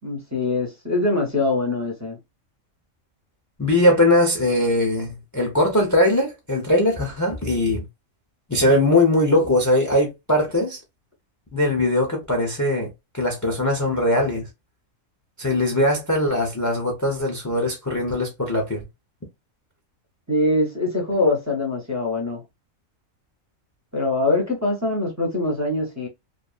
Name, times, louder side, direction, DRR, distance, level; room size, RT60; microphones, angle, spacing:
voice 1, 0.0-2.2 20.3-22.4 23.9-26.1, left 2 dB, 15° right, 0.6 m, -23 dB
voice 2, 3.6-7.9 8.5-10.8 11.5-14.4 15.4-18.9, left 1 dB, 25° left, 0.3 m, -20 dB
2.6 x 2.4 x 2.3 m
omnidirectional pair, 1.4 m